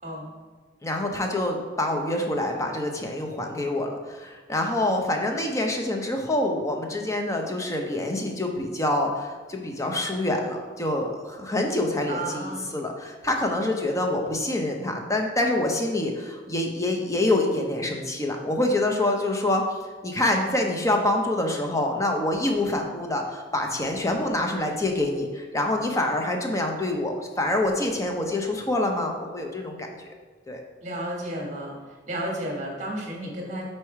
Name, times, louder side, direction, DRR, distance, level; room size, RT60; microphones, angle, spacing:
voice 1, 0.8-19.6 20.0-30.1 30.5-30.6, left 1 dB, 15° left, 2 dB, 0.6 m, -26 dB
voice 2, 12.1-12.8 30.8-31.8 32.1-33.6, right 1 dB, 40° right, -1 dB, 1.4 m, -32 dB
4.7 x 4.4 x 4.7 m, 1.4 s
head